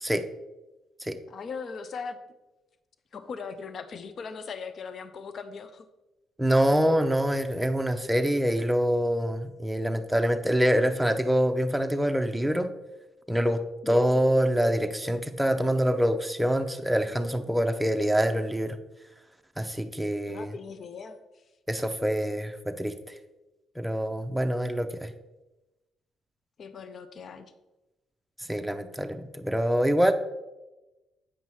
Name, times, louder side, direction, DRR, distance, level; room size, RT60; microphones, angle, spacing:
voice 1, 1.3-2.2 3.1-5.9 13.8-14.2 20.3-21.2 26.6-27.5, left 5 dB, 55° left, 10 dB, 0.5 m, -39 dB
voice 2, 6.4-12.7 13.3-13.6 13.9-18.8 19.6-20.5 21.7-22.9 23.8-25.1 28.5-30.1, equal, 5° right, 7 dB, 0.6 m, -25 dB
8.4 x 5.4 x 3.1 m, 1.0 s
cardioid pair, 90°, 0 cm